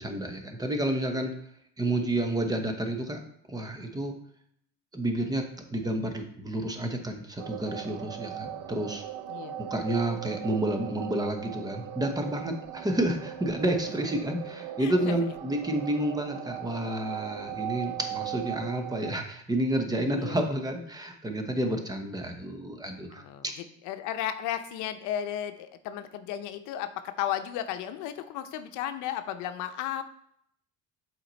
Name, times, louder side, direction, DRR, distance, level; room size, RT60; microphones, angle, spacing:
voice 1, 0.0-1.3 1.8-3.2 3.5-4.1 4.9-9.0 9.6-23.5, right 1 dB, 15° right, 4 dB, 1.0 m, -30 dB
sound 1, 7.4-19.1, right 11 dB, 85° right, 0.7 m, -39 dB
voice 2, 14.8-15.2 20.2-20.5 23.1-23.4 23.8-30.0, left 10 dB, 80° left, 9 dB, 0.7 m, -34 dB
7.6 x 4.5 x 4.0 m, 0.69 s
cardioid pair, 130°, 30 cm